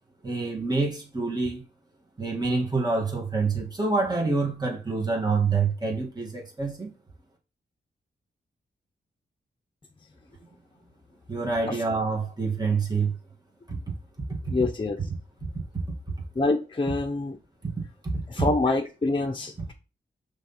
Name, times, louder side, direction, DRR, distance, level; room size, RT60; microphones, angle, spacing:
voice 1, 0.2-1.6 2.2-6.9 11.3-13.1 13.7-13.8 14.3-14.5 17.6-17.7 18.0-18.2, right 4 dB, 20° right, 2.4 m, -27 dB
voice 2, 14.5-15.0 16.3-17.4 18.3-19.7, left 3 dB, 25° left, 0.8 m, -26 dB
6.2 x 3.7 x 5.9 m
cardioid pair, 80°, 19 cm